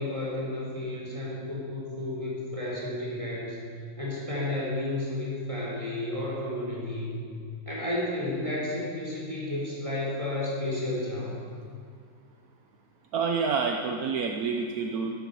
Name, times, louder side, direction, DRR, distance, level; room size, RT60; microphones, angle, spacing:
voice 1, 0.0-3.6 4.0-7.2 7.7-11.4, left 1 dB, 20° right, -5 dB, 4.0 m, -32 dB
voice 2, 13.1-15.1, right 5 dB, 70° right, 3 dB, 1.2 m, -28 dB
13.5 x 11.0 x 7.0 m, 2.1 s
omnidirectional pair, 1.7 m